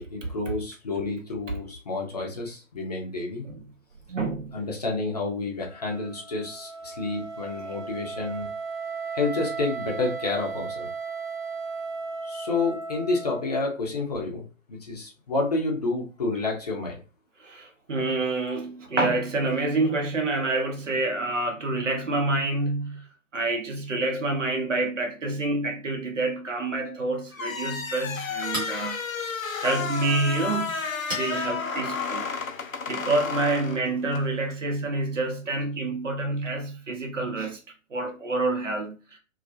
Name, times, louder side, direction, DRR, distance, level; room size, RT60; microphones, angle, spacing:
voice 1, 0.0-3.5 4.5-8.5 9.1-10.9 12.2-14.4 14.7-17.0, left 3 dB, 30° left, 0.5 m, -29 dB
voice 2, 4.1-4.6 17.4-23.0 23.3-29.0 29.6-30.7 31.1-32.3 32.9-37.6 37.9-39.0, right 2 dB, 70° right, 0.8 m, -27 dB
Wind instrument woodwind instrument, 5.6-13.7, right 4 dB, 5° left, 0.9 m, -36 dB
Chink clink, 27.2-32.8, right 1 dB, 15° right, 0.5 m, -42 dB
sound 1, 27.3-34.3, left 5 dB, 90° left, 0.5 m, -32 dB
2.3 x 2.0 x 2.6 m
figure-of-eight pair, 130°, 39 cm